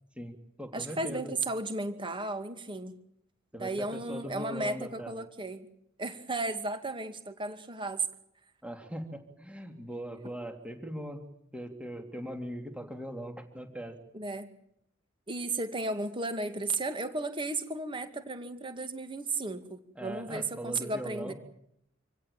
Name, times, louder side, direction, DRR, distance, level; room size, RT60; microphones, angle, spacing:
voice 1, 0.1-1.3 3.5-5.1 8.6-11.2 11.5-13.9 19.9-21.3, right 1 dB, 5° right, 5 dB, 3.2 m, -40 dB
voice 2, 0.7-2.9 3.6-5.7 6.0-8.1 14.1-14.5 15.3-21.3, right 2 dB, 25° right, 8 dB, 2.2 m, -34 dB
27.0 x 17.0 x 8.9 m, 0.74 s
head